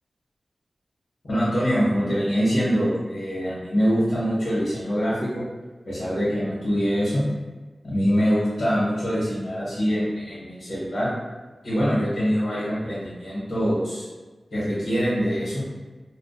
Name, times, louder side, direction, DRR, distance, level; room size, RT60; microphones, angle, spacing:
voice 1, 1.3-5.4 5.9-7.3 7.8-11.1 11.6-14.0 14.5-15.6, equal, 70° left, -9 dB, 1.0 m, -24 dB
2.6 x 2.3 x 2.2 m, 1.3 s
wide cardioid pair, 65°, 0 cm